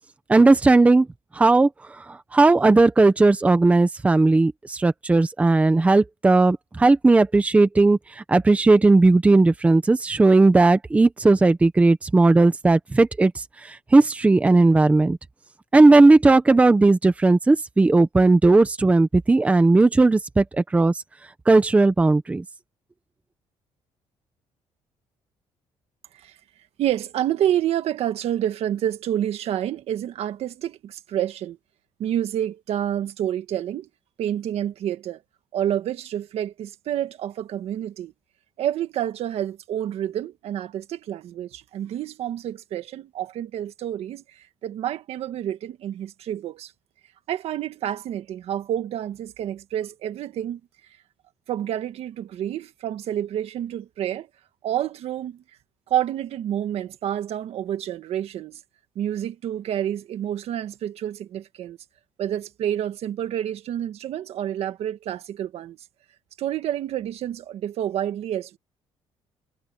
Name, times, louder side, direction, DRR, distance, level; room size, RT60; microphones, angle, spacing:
voice 1, 0.3-1.1 1.3-1.7 2.0-15.2 15.7-20.9 21.5-22.4, right 3 dB, 10° right, 0.8 m, -17 dB
voice 2, 26.8-31.6 32.0-33.9 34.2-35.2 35.5-38.1 38.6-46.7 47.3-50.6 51.5-54.3 54.6-55.4 55.9-58.6 59.0-61.8 62.2-65.8 66.4-68.6, right 11 dB, 60° right, 1.6 m, -28 dB
cardioid pair, 170°, 12 cm